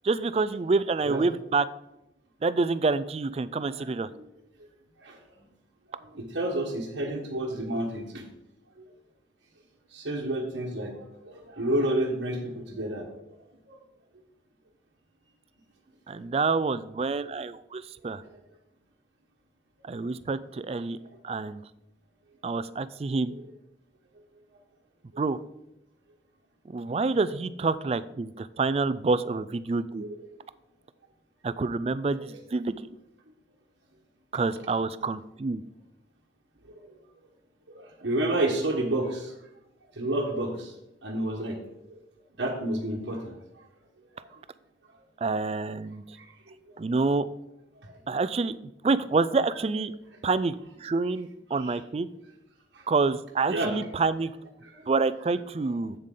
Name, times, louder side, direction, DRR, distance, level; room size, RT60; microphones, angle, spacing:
voice 1, 0.0-1.6 2.4-4.1 16.1-18.2 19.8-21.0 21.2-21.6 22.4-23.3 25.2-25.4 26.7-30.0 31.4-32.7 34.3-35.6 45.2-46.0 46.8-47.3 48.1-48.6 48.8-49.9 50.2-50.5 50.8-52.1 52.9-54.3 54.9-56.0, right 3 dB, 35° right, 15 dB, 0.3 m, -27 dB
voice 2, 3.8-4.3 5.0-5.2 5.9-8.2 9.9-13.2 13.7-13.8 18.3-18.4 23.3-23.4 26.9-27.0 30.0-30.1 32.2-32.3 36.7-36.9 37.7-39.3 40.0-40.7 41.0-41.6 42.4-43.3 44.2-44.3 46.2-46.3 47.8-47.9 51.6-51.8 52.7-52.8 53.5-53.8 54.6-54.9, right 1 dB, 75° right, -2 dB, 1.2 m, -30 dB
8.1 x 7.4 x 3.8 m, 0.88 s
head